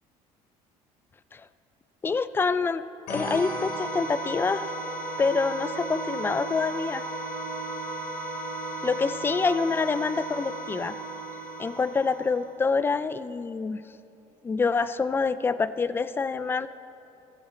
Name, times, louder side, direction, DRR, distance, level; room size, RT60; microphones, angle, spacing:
voice 1, 2.0-2.8 3.1-4.7 5.2-7.0 8.8-11.0 11.6-13.8 14.4-16.7, left 4 dB, 15° left, 14 dB, 0.4 m, -26 dB
sound 1, 3.1-12.5, right 2 dB, 80° left, 3.7 m, -34 dB
16.5 x 14.5 x 4.4 m, 3.0 s
cardioid pair, 125°, 13 cm